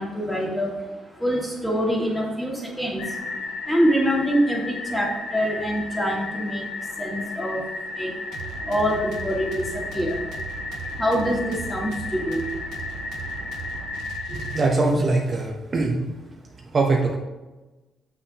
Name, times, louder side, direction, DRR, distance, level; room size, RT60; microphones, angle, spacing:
voice 1, 0.0-14.0, equal, 5° left, -2 dB, 1.7 m, -26 dB
sound 1, 3.0-14.6, left 3 dB, 80° left, 1.7 m, -34 dB
sound 2, 8.3-15.0, right 6 dB, 85° right, 0.6 m, -38 dB
voice 2, 14.3-16.2 16.7-17.2, right 3 dB, 40° right, 0 dB, 0.7 m, -22 dB
6.5 x 5.6 x 2.8 m, 1.1 s
cardioid pair, 90°, 0 cm